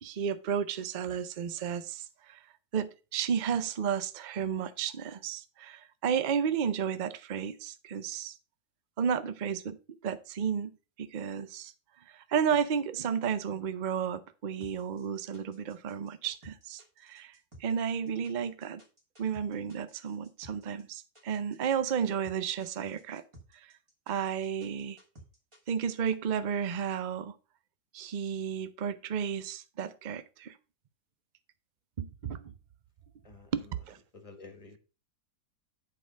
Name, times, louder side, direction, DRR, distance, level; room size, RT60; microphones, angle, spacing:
voice 1, 0.0-2.4 2.7-8.4 9.0-10.7 11.0-11.7 12.1-18.8 19.2-23.2 23.5-23.7 24.1-25.0 25.7-27.3 27.9-30.6 32.0-32.5 33.5-34.0, right 7 dB, 60° right, 0.5 m, -32 dB
sound 1, 14.6-26.1, right 1 dB, 20° right, 2.1 m, -55 dB
voice 2, 33.2-33.8 34.1-34.8, left 4 dB, 20° left, 1.6 m, -51 dB
8.3 x 4.8 x 5.1 m
omnidirectional pair, 1.7 m